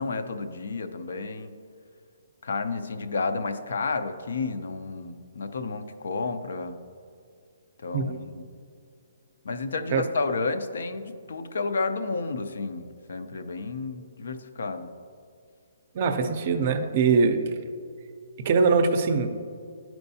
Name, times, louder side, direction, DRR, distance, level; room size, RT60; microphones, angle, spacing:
voice 1, 0.0-1.6 2.4-6.7 7.8-8.4 9.4-14.9, left 3 dB, 75° left, 9 dB, 0.5 m, -31 dB
voice 2, 15.9-17.4 18.4-19.3, right 5 dB, 35° right, 7 dB, 0.5 m, -22 dB
11.5 x 4.5 x 2.7 m, 2.3 s
hypercardioid pair, 170°, 0 cm